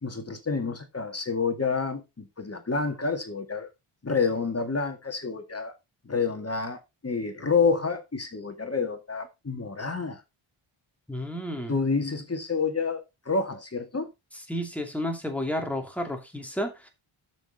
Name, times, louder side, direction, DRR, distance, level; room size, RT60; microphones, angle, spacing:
voice 1, 0.0-3.7 4.0-5.7 6.1-10.2 11.7-14.1, left 4 dB, 30° left, 2.0 m, -28 dB
voice 2, 11.1-11.8 14.5-16.9, left 1 dB, 5° left, 2.7 m, -31 dB
13.0 x 6.4 x 4.2 m
wide cardioid pair, 180°, 50 cm